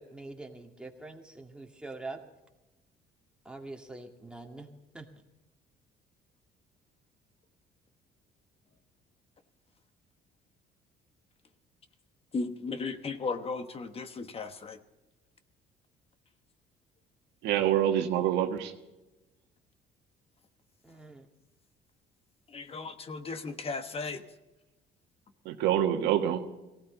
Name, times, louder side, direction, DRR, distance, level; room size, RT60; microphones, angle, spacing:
voice 1, 0.0-2.2 3.5-4.7 4.9-5.1 20.8-21.3, right 2 dB, 5° right, 1 dB, 2.1 m, -44 dB
voice 2, 12.3-14.8 22.5-24.2, left 4 dB, 35° left, 9 dB, 1.1 m, -36 dB
voice 3, 17.4-18.7 25.4-26.5, right 10 dB, 85° right, 6 dB, 1.5 m, -26 dB
18.5 x 16.5 x 4.0 m, 1.0 s
cardioid pair, 110°, 17 cm